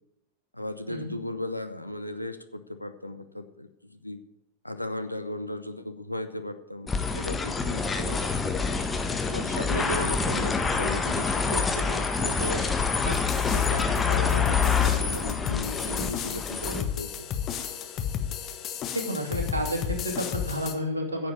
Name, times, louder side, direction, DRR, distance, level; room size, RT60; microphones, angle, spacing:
voice 1, 0.5-4.2 4.6-8.5 9.3-12.7 13.5-17.3, left 1 dB, 90° left, 9 dB, 0.8 m, -36 dB
sound 1, 6.9-16.8, left 5 dB, 15° left, 1.3 m, -26 dB
sound 2, 13.1-20.7, left 9 dB, 30° left, 1.3 m, -33 dB
voice 2, 18.9-21.3, equal, 75° right, 1 dB, 2.5 m, -30 dB
10.0 x 7.2 x 8.9 m, 0.88 s
figure-of-eight pair, 90°, 0 cm